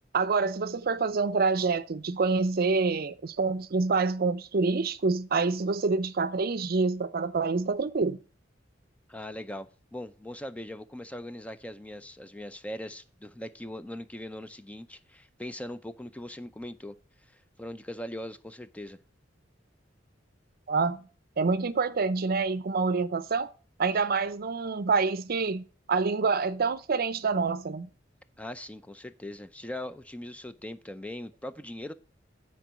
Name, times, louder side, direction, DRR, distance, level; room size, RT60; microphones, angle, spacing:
voice 1, 0.1-8.2 20.7-21.0 21.4-23.5 23.8-27.9, right 4 dB, 55° right, 0.6 m, -27 dB
voice 2, 9.1-17.0 17.3-19.0 28.4-31.9, left 1 dB, 5° left, 0.5 m, -40 dB
9.1 x 4.5 x 6.8 m
head